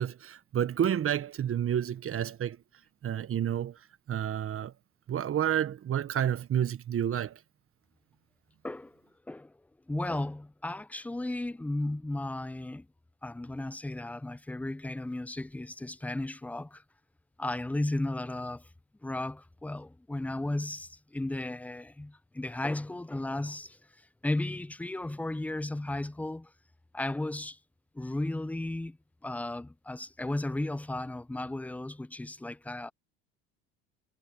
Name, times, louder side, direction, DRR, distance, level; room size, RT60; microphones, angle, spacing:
voice 1, 0.0-2.6 3.0-3.8 4.1-4.7 5.1-7.4, right 10 dB, 40° right, 1.3 m, -30 dB
voice 2, 8.6-9.0 9.3-9.5 9.9-12.9 13.2-16.8 17.4-18.7 19.0-23.8 24.2-26.5 26.9-27.6 27.9-29.0 29.2-32.9, left 2 dB, 5° left, 0.5 m, -34 dB
hypercardioid pair, 80°, 35 cm